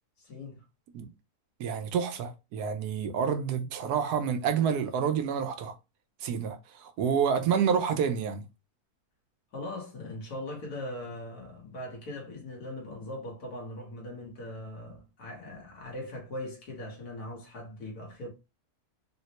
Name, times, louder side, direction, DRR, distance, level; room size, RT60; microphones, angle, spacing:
voice 1, 0.2-0.6 9.5-18.3, left 1 dB, 75° left, 1.7 m, -40 dB
voice 2, 1.6-5.7 6.2-8.4, right 7 dB, 85° right, 1.1 m, -28 dB
3.8 x 2.1 x 2.8 m
omnidirectional pair, 1.6 m